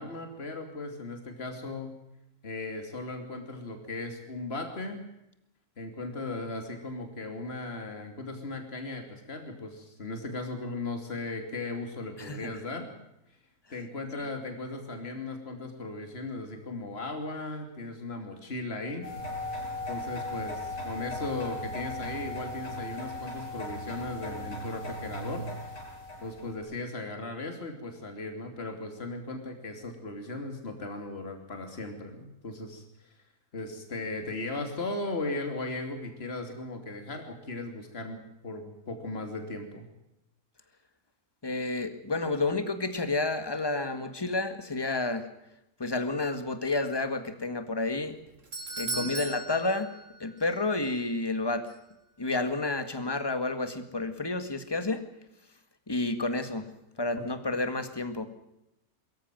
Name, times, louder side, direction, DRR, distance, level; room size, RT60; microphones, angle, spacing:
voice 1, 0.0-1.9 2.4-5.0 5.8-12.9 13.7-19.1 19.9-25.4 26.2-32.8 33.5-39.8 48.8-49.1, left 2 dB, 40° left, 5 dB, 3.2 m, -37 dB
voice 2, 12.2-12.5 41.4-45.3 45.8-48.2 48.8-49.9 50.2-51.7 52.2-55.0 55.9-56.7 57.0-58.3, left 2 dB, 15° left, 9 dB, 1.8 m, -30 dB
sound 1, 19.0-26.5, left 1 dB, 85° left, 7.3 m, -37 dB
Doorbell, 48.0-50.6 50.8-50.9 51.7-51.8, right 3 dB, 55° right, 2.8 m, -38 dB
23.0 x 14.5 x 9.1 m, 0.86 s
omnidirectional pair, 1.6 m